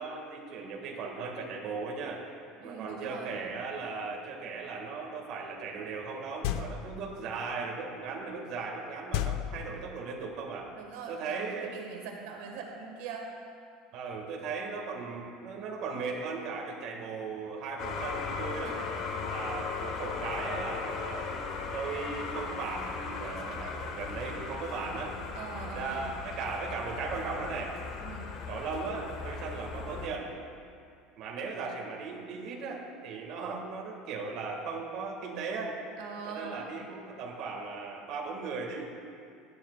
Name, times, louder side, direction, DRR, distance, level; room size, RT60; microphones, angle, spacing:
voice 1, 0.0-2.2 2.6-10.7 11.1-11.7 13.9-18.8 19.2-21.3 21.7-25.2 25.6-27.8 28.5-30.3 31.2-35.8 36.3-38.9, right 4 dB, 45° right, -1 dB, 1.8 m, -37 dB
voice 2, 2.6-3.4 10.7-13.3 18.6-18.8 25.3-26.1 28.0-28.3 36.0-36.6, right 5 dB, 75° right, 1 dB, 1.5 m, -42 dB
sound 1, 6.4-7.1 9.1-10.1, left 10 dB, 65° left, 0.5 m, -33 dB
sound 2, 17.8-30.1, left 4 dB, 40° left, 1.1 m, -37 dB
19.0 x 13.0 x 2.4 m, 2.5 s
cardioid pair, 180°, 0 cm